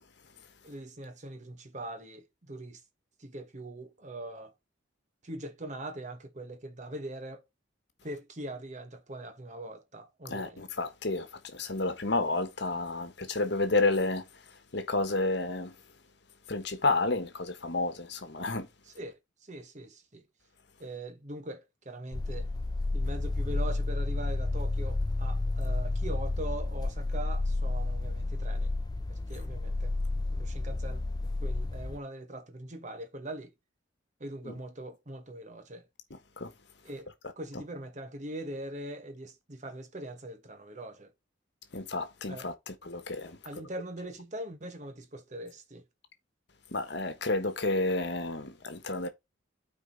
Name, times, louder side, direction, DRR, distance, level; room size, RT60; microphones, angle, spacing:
voice 1, 0.6-2.8 3.2-4.5 5.2-7.4 8.0-10.7 18.8-20.2 20.8-22.5 22.9-28.7 29.1-31.0 31.4-33.5 34.2-35.9 36.8-37.1 37.4-41.1 42.3-42.5 43.4-45.8, right 1 dB, 35° right, 1.1 m, -42 dB
voice 2, 10.3-14.2 14.7-15.7 16.5-18.7 34.5-34.6 36.1-36.5 41.7-43.4 46.7-49.1, left 2 dB, 60° left, 1.3 m, -31 dB
sound 1, 22.1-32.0, left 2 dB, 20° left, 0.4 m, -31 dB
9.1 x 4.6 x 4.0 m
head